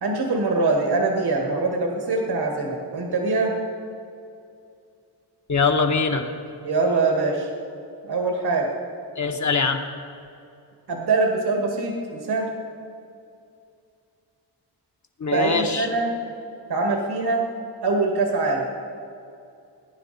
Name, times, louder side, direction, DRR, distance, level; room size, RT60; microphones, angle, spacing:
voice 1, 0.0-3.6 6.6-7.5 8.0-8.7 10.9-12.5 15.3-16.1 16.7-17.5 17.8-18.7, right 3 dB, 70° right, 1 dB, 1.7 m, -23 dB
voice 2, 5.5-6.3 9.2-9.8 15.2-15.9, left 4 dB, 45° left, 4 dB, 1.2 m, -22 dB
19.5 x 10.0 x 4.1 m, 2.5 s
wide cardioid pair, 105°, 40 cm